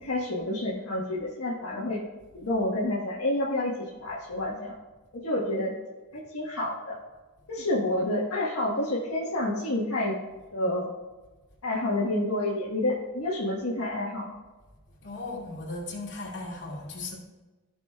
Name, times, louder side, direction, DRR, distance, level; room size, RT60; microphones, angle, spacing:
voice 1, 0.0-2.0 2.3-4.7 5.2-5.7 6.1-7.0 7.5-10.1 10.5-10.9 11.6-14.3, left 1 dB, 75° left, -5 dB, 1.4 m, -29 dB
voice 2, 15.0-17.1, left 2 dB, 50° left, -4 dB, 2.7 m, -37 dB
15.5 x 6.2 x 2.4 m, 1.2 s
head